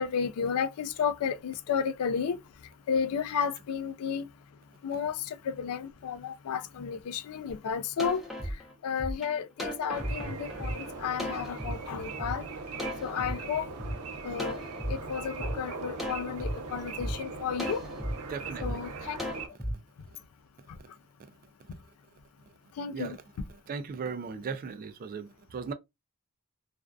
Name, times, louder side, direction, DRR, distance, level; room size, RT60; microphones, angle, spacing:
voice 1, 0.0-2.4 2.9-4.3 4.8-8.6 8.8-12.4 13.0-13.7 14.2-14.6 14.9-17.8 18.6-19.2 22.8-23.2, left 7 dB, 75° left, 0.3 m, -32 dB
sound 1, 7.5-7.6 8.0-11.7 12.2-12.3 12.8-13.9 14.4-14.9 15.4-15.5 16.0-16.5 17.0-17.1 17.6-18.1 18.6-18.7 19.2-19.7, equal, ahead, 0.6 m, -35 dB
sound 2, 9.9-19.5, right 4 dB, 90° right, 0.5 m, -40 dB
voice 2, 18.3-18.8 19.2-19.3 20.8-20.9 22.9-23.2 23.7-25.7, right 5 dB, 40° right, 0.3 m, -38 dB
2.4 x 2.3 x 2.2 m
head